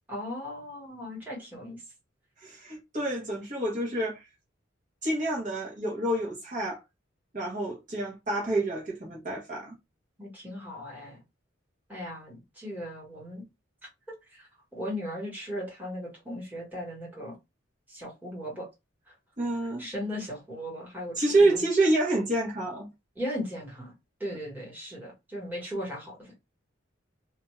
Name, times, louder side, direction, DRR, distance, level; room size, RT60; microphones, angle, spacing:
voice 1, 0.1-1.8 10.2-11.2 11.9-13.4 14.3-17.3 17.9-18.7 19.8-21.6 23.2-23.9 24.2-26.3, equal, 10° right, 1.4 m, -37 dB
voice 2, 2.4-4.3 5.0-6.8 7.3-9.8 19.4-19.8 21.2-22.9, right 2 dB, 40° right, 1.0 m, -27 dB
2.6 x 2.3 x 3.1 m
head